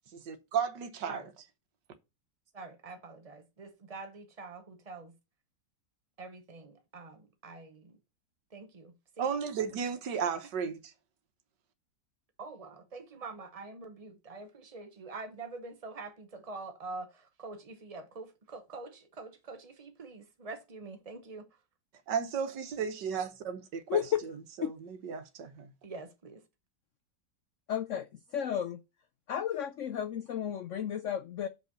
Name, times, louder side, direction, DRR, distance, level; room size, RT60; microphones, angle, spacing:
voice 1, 0.1-1.2 9.2-10.9 22.1-24.3 24.6-25.7, right 7 dB, 70° right, 1.7 m, -34 dB
voice 2, 2.5-5.1 6.2-8.0 8.5-9.3 10.2-10.4 12.4-21.5 25.8-26.4, right 3 dB, 40° right, 0.5 m, -45 dB
voice 3, 23.9-24.2 24.6-24.7 27.7-28.1 28.3-28.8 29.3-31.5, left 9 dB, 85° left, 0.6 m, -32 dB
6.0 x 5.4 x 6.6 m
omnidirectional pair, 2.0 m